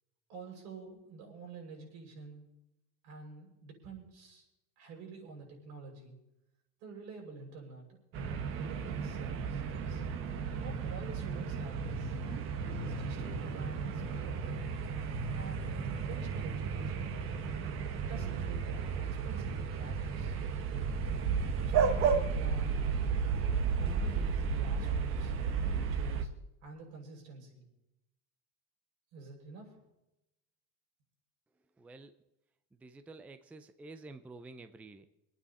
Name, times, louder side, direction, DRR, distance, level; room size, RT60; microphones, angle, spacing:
voice 1, 0.3-2.4 3.0-4.5 4.8-6.2 6.8-8.0 8.5-10.0 10.6-12.1 12.7-14.5 15.3-17.1 18.0-20.4 21.6-22.7 23.8-25.3 25.7-26.3 26.6-27.6 29.1-29.8, right 4 dB, 75° right, 0 dB, 6.4 m, -48 dB
sound 1, 8.1-26.3, right 5 dB, 45° right, 1.3 m, -33 dB
voice 2, 31.8-32.1 32.8-35.2, right 3 dB, 5° right, 9 dB, 0.4 m, -50 dB
26.5 x 9.3 x 4.2 m, 0.90 s
cardioid pair, 175°, 30 cm